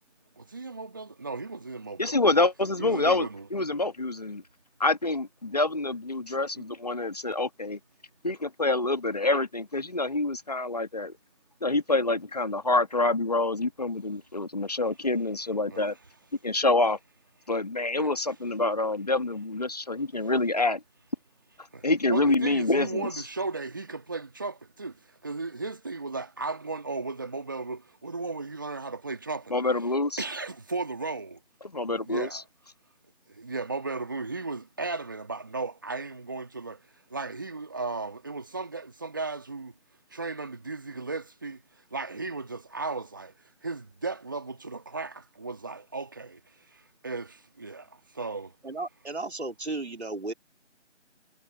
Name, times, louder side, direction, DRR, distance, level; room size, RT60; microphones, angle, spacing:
voice 1, 0.4-2.2 2.8-3.5 6.5-6.6 15.7-15.9 18.0-18.1 21.7-29.5 30.2-31.4 31.9-32.4 33.3-36.8 37.1-39.7 40.1-41.6 41.9-43.3 43.6-46.4 46.7-48.5, right 3 dB, 15° right, 1.8 m, -35 dB
voice 2, 2.0-4.4 4.8-7.8 8.2-11.1 11.6-15.9 16.4-17.0 17.5-20.8 21.8-23.1 29.5-30.2 31.6-32.4, left 2 dB, 30° left, 1.7 m, -26 dB
voice 3, 48.6-50.3, right 2 dB, 60° right, 3.7 m, -34 dB
figure-of-eight pair, 170°, 37 cm